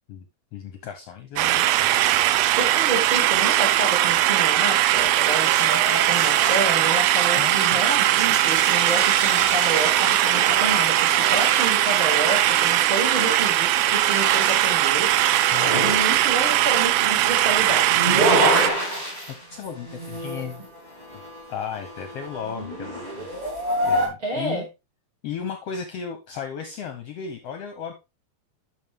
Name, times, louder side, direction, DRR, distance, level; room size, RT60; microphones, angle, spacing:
voice 1, 0.5-1.9 7.3-7.8 15.5-15.9 18.3-18.6 19.5-20.6 21.5-23.3 23.8-24.6 25.2-27.9, left 7 dB, 65° left, 7 dB, 1.7 m, -35 dB
sound 1, 1.4-18.7, right 14 dB, 80° right, 1.5 m, -20 dB
voice 2, 2.6-15.1 15.8-18.0 18.4-18.7 24.2-24.7, right 2 dB, 40° right, -2 dB, 5.7 m, -29 dB
sound 2, 5.1-24.1, equal, 15° right, 2.9 m, -30 dB
11.5 x 5.7 x 3.5 m, 0.25 s
omnidirectional pair, 3.5 m